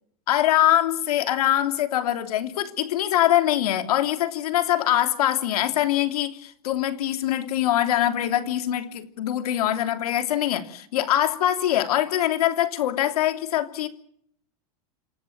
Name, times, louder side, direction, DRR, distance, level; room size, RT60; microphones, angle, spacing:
voice 1, 0.3-13.9, left 12 dB, 80° left, 8 dB, 2.9 m, -23 dB
27.5 x 15.0 x 8.9 m, 0.65 s
supercardioid pair, 135°, 19 cm